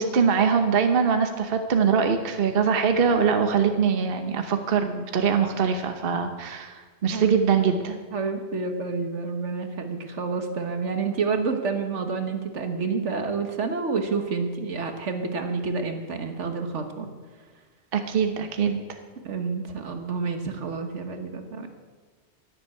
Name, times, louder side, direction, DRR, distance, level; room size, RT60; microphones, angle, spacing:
voice 1, 0.0-8.0 17.9-18.8, right 6 dB, 55° right, 7 dB, 1.1 m, -23 dB
voice 2, 8.1-17.1 19.2-21.7, right 4 dB, 80° right, 6 dB, 1.7 m, -29 dB
11.0 x 11.0 x 8.4 m, 1.4 s
omnidirectional pair, 1.2 m